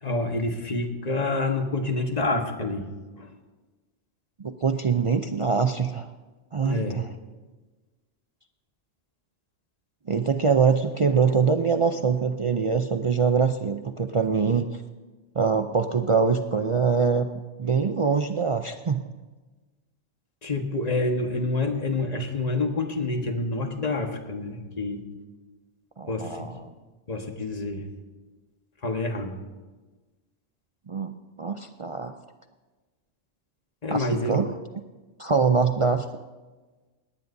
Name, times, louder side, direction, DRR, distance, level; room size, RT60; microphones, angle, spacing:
voice 1, 0.0-2.9 3.2-3.3 6.6-7.0 20.4-25.0 26.1-26.6 27.1-27.9 28.8-29.3 33.8-34.4, left 2 dB, 35° left, 4 dB, 1.4 m, -27 dB
voice 2, 4.4-6.1 6.5-7.1 10.1-14.7 15.3-17.3 17.6-19.0 26.0-26.7 30.9-32.2 33.9-34.6 35.2-36.1, right 5 dB, 50° right, 7 dB, 0.4 m, -24 dB
19.0 x 18.0 x 2.7 m, 1.3 s
omnidirectional pair, 1.2 m